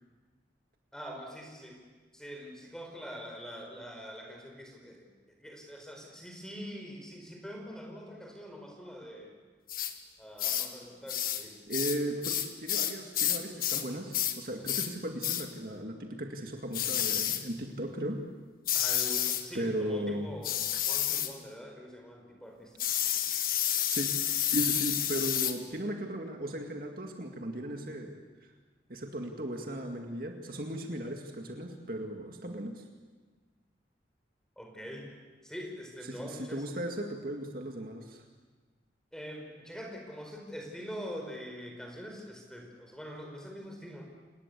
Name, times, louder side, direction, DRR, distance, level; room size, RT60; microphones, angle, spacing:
voice 1, 0.9-1.8 2.1-5.1 5.4-9.3 10.2-11.6 18.7-22.7 34.6-35.1 35.4-36.6 39.1-44.0, equal, 5° left, 2 dB, 4.8 m, -44 dB
sound 1, 9.7-9.9 10.4-10.7 11.1-11.4 11.7-13.9 14.1-14.4 14.7-14.9 15.2-15.5 16.7-17.4 18.7-19.5 20.4-21.3 22.8-25.6, left 11 dB, 50° left, 1.6 m, -30 dB
voice 2, 11.7-18.2 19.5-20.3 23.9-24.1 24.5-28.5 28.9-32.9 36.0-38.2, right 1 dB, 50° right, 3 dB, 2.2 m, -36 dB
28.5 x 19.5 x 8.4 m, 1.4 s
head